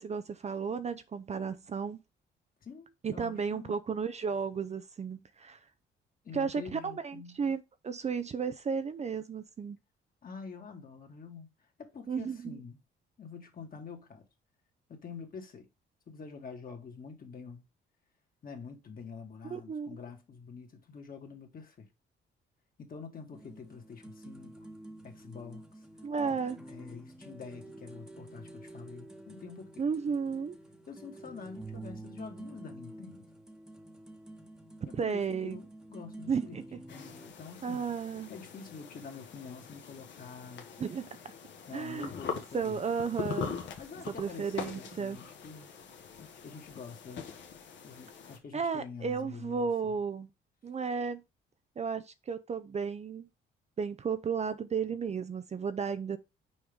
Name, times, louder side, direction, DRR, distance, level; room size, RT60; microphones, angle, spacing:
voice 1, 0.0-2.0 3.0-5.6 6.3-9.8 12.1-12.6 19.4-20.0 26.0-26.6 29.8-30.6 34.9-35.6 36.3-36.8 37.6-38.3 40.8-41.1 41.7-42.1 42.5-43.5 44.1-45.2 48.5-50.3 50.6-51.2 51.8-53.3 53.8-56.2, right 6 dB, 35° right, 0.5 m, -33 dB
voice 2, 2.6-4.0 6.2-7.5 10.2-11.5 11.8-12.8 13.2-14.2 14.9-15.7 16.1-17.7 18.4-21.9 22.8-24.7 25.0-25.9 26.2-29.9 30.9-33.3 34.9-36.6 36.9-37.8 38.3-40.7 41.7-42.8 43.8-45.7 46.4-47.3 47.8-50.0, left 5 dB, 45° left, 1.9 m, -47 dB
sound 1, 23.3-37.3, right 2 dB, 5° right, 1.1 m, -49 dB
sound 2, 36.9-48.4, left 6 dB, 65° left, 1.3 m, -43 dB
6.3 x 4.7 x 3.5 m
cardioid pair, 90°, 20 cm